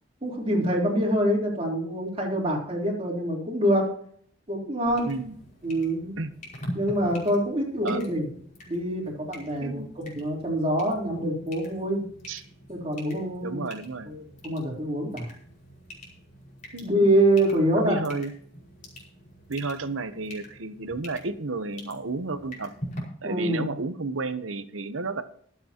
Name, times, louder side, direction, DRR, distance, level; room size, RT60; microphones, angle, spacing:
voice 1, 0.2-3.9 4.5-5.1 5.6-6.1 6.7-8.3 8.7-12.0 12.7-13.6 14.0-15.3 16.8-18.1 23.2-23.7, right 1 dB, 30° right, -2 dB, 3.7 m, -25 dB
sound 1, 4.8-23.0, equal, 40° left, 5.3 m, -44 dB
voice 2, 13.4-14.1 16.7-17.0 17.7-18.3 19.5-22.7 23.2-25.2, right 3 dB, 85° right, 11 dB, 1.0 m, -32 dB
24.0 x 8.1 x 3.0 m, 0.62 s
head